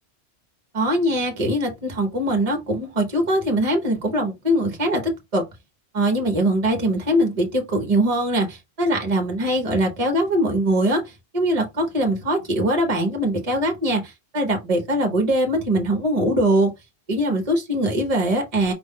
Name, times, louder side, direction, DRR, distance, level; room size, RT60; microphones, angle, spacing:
voice 1, 0.7-5.5 5.9-16.7 17.1-18.7, right 1 dB, 35° right, 1.2 m, -22 dB
5.1 x 2.6 x 3.7 m
omnidirectional pair, 1.1 m